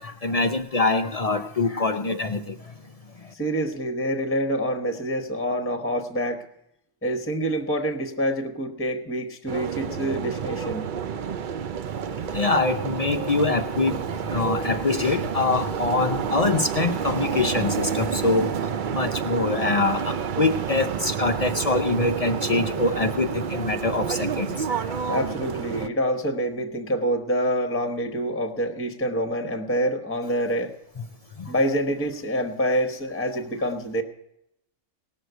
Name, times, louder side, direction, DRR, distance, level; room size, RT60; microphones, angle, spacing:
voice 1, 0.0-2.6 12.3-14.0 14.3-18.5 18.9-25.2 31.0-31.1, left 3 dB, 45° left, 7 dB, 0.5 m, -24 dB
voice 2, 3.3-6.4 7.0-10.9 25.1-30.7 31.5-34.0, equal, 10° left, 6 dB, 1.0 m, -26 dB
sound 1, 9.5-25.9, right 7 dB, 50° right, 0.6 m, -29 dB
18.5 x 6.4 x 7.9 m, 0.81 s
omnidirectional pair, 1.3 m